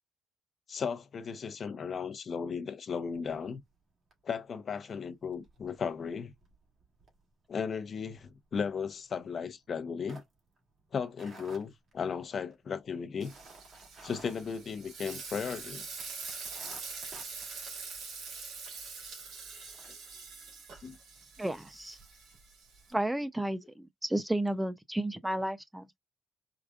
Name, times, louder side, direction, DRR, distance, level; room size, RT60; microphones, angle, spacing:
voice 1, 0.7-3.6 4.2-6.3 7.5-10.2 10.9-13.3 14.0-15.8 19.8-20.0 20.8-20.9, left 6 dB, 50° left, 0.7 m, -36 dB
sound 1, 3.1-3.8 4.1-4.4 4.7-15.5 15.8-15.9 16.2-18.7 19.1-19.2 19.6-19.9, right 2 dB, 55° right, 2.0 m, -56 dB
Frying (food), 13.2-22.9, right 4 dB, 75° right, 2.0 m, -44 dB
voice 2, 21.4-22.0 22.9-26.0, right 1 dB, 10° right, 0.5 m, -32 dB
4.8 x 2.4 x 2.4 m
cardioid pair, 90°, 0 cm